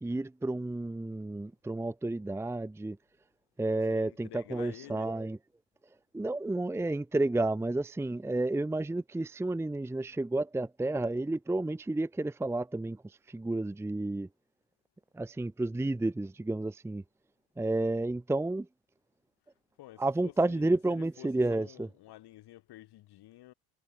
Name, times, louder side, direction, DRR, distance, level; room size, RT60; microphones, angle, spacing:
voice 1, 0.0-3.0 3.6-5.4 6.1-14.3 15.1-17.0 17.6-18.7 20.0-21.9, right 2 dB, 5° right, 0.7 m, -31 dB
voice 2, 3.9-5.1 19.8-23.5, left 15 dB, 65° left, 4.3 m, -51 dB
supercardioid pair, 75°, 42 cm